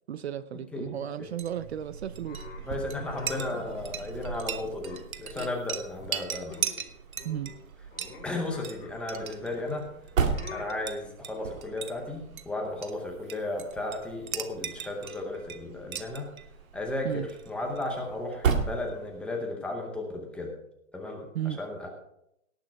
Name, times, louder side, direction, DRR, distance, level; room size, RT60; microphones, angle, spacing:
voice 1, 0.1-2.5 7.2-7.5 17.0-17.3 21.3-21.6, right 10 dB, 50° right, 16 dB, 0.6 m, -34 dB
voice 2, 0.7-1.3 2.7-6.7 8.2-9.9 10.5-16.3 16.7-20.5 20.9-21.9, left 2 dB, 5° left, 1 dB, 0.7 m, -34 dB
Chink clink, 1.2-19.0, right 8 dB, 90° right, 1.2 m, -40 dB
sound 1, 1.4-19.5, right 6 dB, 70° right, 1.9 m, -37 dB
sound 2, 2.2-4.4 4.9-5.7 6.0-6.2 6.5-6.9 7.1-9.6 10.3-10.7, left 4 dB, 20° left, 5.3 m, -46 dB
18.0 x 6.6 x 4.7 m, 0.77 s
hypercardioid pair, 160°, 41 cm